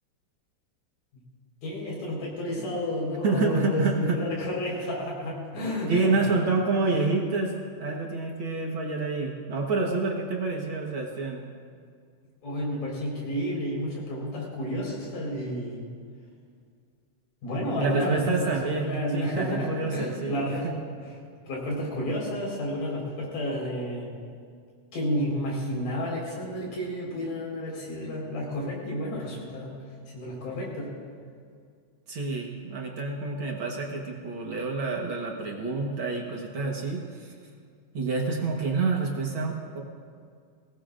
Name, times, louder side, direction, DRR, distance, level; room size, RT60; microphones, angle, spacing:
voice 1, 1.6-6.2 12.4-15.8 17.4-18.5 18.8-20.7 21.0-21.1 21.5-24.2 24.9-29.8 30.1-30.9, left 1 dB, 90° left, -4 dB, 6.0 m, -31 dB
voice 2, 3.2-4.2 5.8-11.4 17.7-20.7 32.1-37.3 37.9-39.8, right 3 dB, 55° right, 0 dB, 1.6 m, -28 dB
22.5 x 17.5 x 2.5 m, 2.2 s
omnidirectional pair, 3.6 m